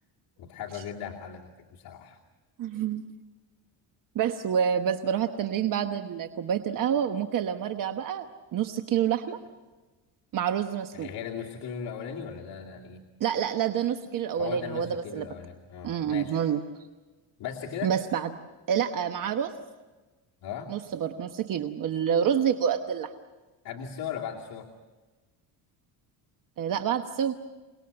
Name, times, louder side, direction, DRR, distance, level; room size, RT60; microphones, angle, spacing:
voice 1, 0.4-2.2 10.9-13.0 14.4-16.4 17.4-17.9 20.4-20.7 23.6-24.7, left 8 dB, 55° left, -3 dB, 2.6 m, -38 dB
voice 2, 2.6-3.0 4.1-8.3 8.5-9.4 10.3-11.1 13.2-15.2 15.8-16.6 17.8-18.3 18.7-19.5 20.7-23.1 26.6-27.3, right 8 dB, 50° right, 7 dB, 1.2 m, -28 dB
28.0 x 19.5 x 7.9 m, 1.3 s
cardioid pair, 140°, 42 cm